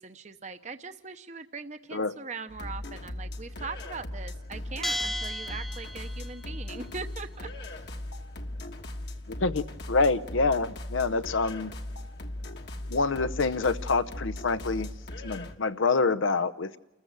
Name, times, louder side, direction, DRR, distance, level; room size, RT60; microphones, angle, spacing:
voice 1, 0.0-7.8, right 4 dB, 35° right, 9 dB, 0.8 m, -41 dB
sound 1, 2.5-15.6, left 1 dB, 60° left, 1.4 m, -38 dB
Bell, 4.8-6.4, equal, ahead, 0.9 m, -34 dB
voice 2, 9.3-11.7 12.9-14.9 15.2-16.8, left 3 dB, 90° left, 13 dB, 0.8 m, -27 dB
29.0 x 14.5 x 8.0 m, 1.0 s
head